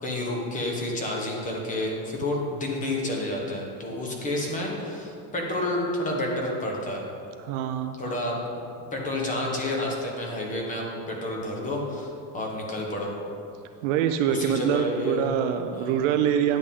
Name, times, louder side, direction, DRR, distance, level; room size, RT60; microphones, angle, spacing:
voice 1, 0.0-7.0 8.0-8.6 8.9-13.1 14.3-15.3 15.7-16.0, left 1 dB, 15° left, -1 dB, 1.1 m, -30 dB
voice 2, 7.4-7.9 13.8-16.6, right 9 dB, 55° right, 7 dB, 0.6 m, -25 dB
10.0 x 8.1 x 3.7 m, 2.5 s
cardioid pair, 175°, 45 cm